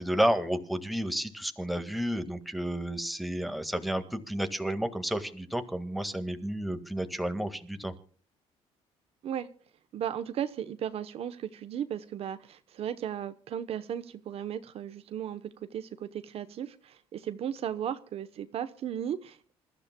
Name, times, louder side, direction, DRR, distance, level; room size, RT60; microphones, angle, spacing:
voice 1, 0.0-7.9, equal, ahead, 7 dB, 1.8 m, -31 dB
voice 2, 9.9-19.5, right 9 dB, 60° right, 11 dB, 0.9 m, -36 dB
27.5 x 14.0 x 2.2 m, 0.44 s
cardioid pair, 125°, 12 cm